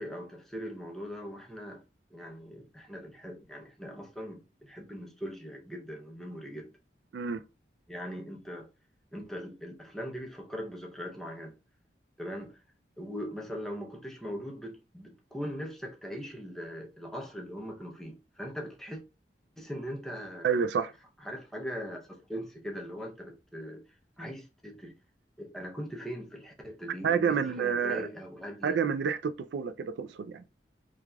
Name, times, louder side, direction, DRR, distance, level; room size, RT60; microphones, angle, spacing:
voice 1, 0.0-1.8 2.1-6.7 7.9-8.7 9.1-11.6 12.2-12.6 13.0-19.0 19.6-20.5 21.2-23.8 24.2-24.9 25.4-28.8, equal, ahead, 0.5 m, -40 dB
voice 2, 7.1-7.4 20.4-20.9 27.0-28.1 28.6-30.4, right 6 dB, 75° right, 0.3 m, -29 dB
3.2 x 2.4 x 2.2 m
head